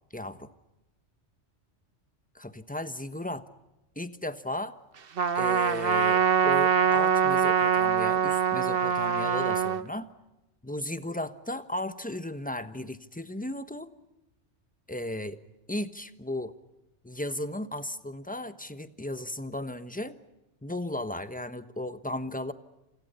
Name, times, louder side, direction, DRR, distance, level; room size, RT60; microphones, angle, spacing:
voice 1, 0.1-0.5 2.3-3.4 4.0-4.8 5.3-10.1 10.6-13.9 14.9-15.4 15.7-16.5 17.0-20.2 20.6-22.5, left 1 dB, 5° left, 11 dB, 1.1 m, -35 dB
Trumpet, 5.2-9.8, right 7 dB, 50° right, 1.2 m, -24 dB
29.5 x 27.5 x 5.6 m, 0.98 s
omnidirectional pair, 1.3 m